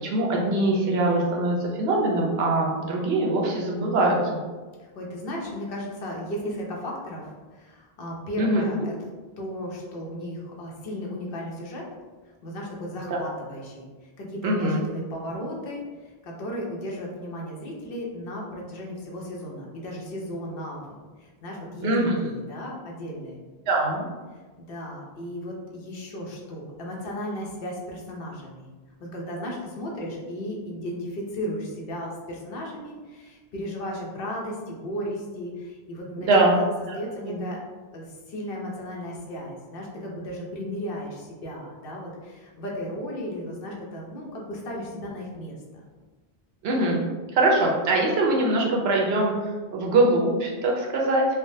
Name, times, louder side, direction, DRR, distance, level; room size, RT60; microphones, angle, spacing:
voice 1, 0.0-4.4 8.4-8.6 13.1-13.2 14.4-14.8 21.8-22.1 23.7-24.0 36.3-36.5 36.9-37.0 37.3-37.4 46.6-47.0 47.3-51.3, right 2 dB, 70° right, -1 dB, 0.9 m, -22 dB
voice 2, 4.8-8.9 9.4-11.8 12.4-13.9 14.2-15.8 16.2-21.9 22.2-23.4 24.7-28.7 29.0-36.6 36.9-37.6 37.9-45.8, equal, 65° left, -2 dB, 0.8 m, -35 dB
3.3 x 2.1 x 2.6 m, 1.3 s
omnidirectional pair, 1.1 m